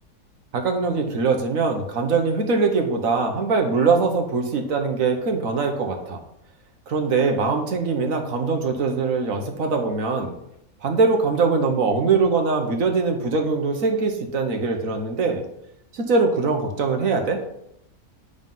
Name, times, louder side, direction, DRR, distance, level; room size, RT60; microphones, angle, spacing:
voice 1, 0.5-6.2 6.9-10.3 10.8-15.4 15.9-17.4, right 4 dB, 65° right, 3 dB, 1.4 m, -22 dB
9.1 x 4.0 x 5.5 m, 0.78 s
omnidirectional pair, 1.6 m